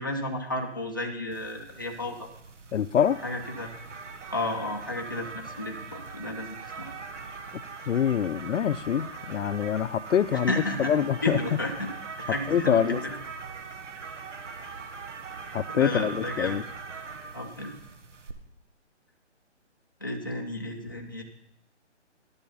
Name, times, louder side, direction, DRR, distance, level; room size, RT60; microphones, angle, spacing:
voice 1, 0.0-2.3 3.2-3.7 4.3-6.9 10.3-10.9 11.2-11.9 12.2-13.2 14.6-14.8 15.7-16.6 17.3-17.7 20.0-21.2, left 1 dB, 20° left, 0.5 m, -33 dB
sound 1, 1.3-18.3, right 4 dB, 85° right, 1.4 m, -41 dB
voice 2, 2.7-3.2 7.9-10.5 10.8-11.4 12.5-13.0 15.5-16.6, left 9 dB, 85° left, 0.6 m, -25 dB
11.0 x 7.0 x 5.4 m
hypercardioid pair, 170°, 36 cm